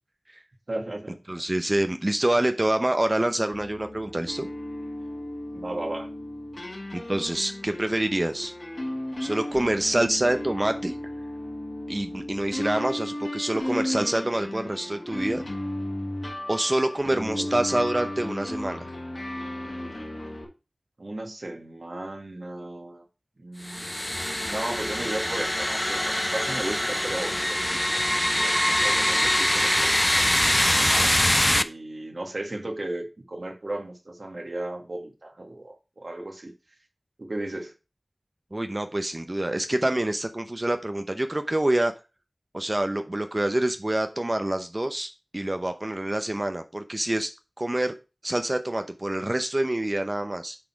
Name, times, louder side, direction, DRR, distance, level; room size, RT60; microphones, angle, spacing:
voice 1, 0.7-1.4 5.5-6.1 17.3-17.5 21.0-23.0 23.4-30.3 30.8-36.5 37.2-37.7, right 1 dB, 60° right, 1.8 m, -36 dB
voice 2, 1.3-4.5 6.9-8.5 9.2-11.0 11.9-15.4 16.5-18.9 38.5-41.9 42.5-47.3 47.6-47.9 48.2-50.6, right 1 dB, 35° right, 0.7 m, -26 dB
sound 1, 3.5-20.4, left 1 dB, 55° left, 2.4 m, -35 dB
sound 2, 23.6-31.6, left 1 dB, 15° left, 0.5 m, -24 dB
8.7 x 4.2 x 4.6 m
wide cardioid pair, 50°, 0 cm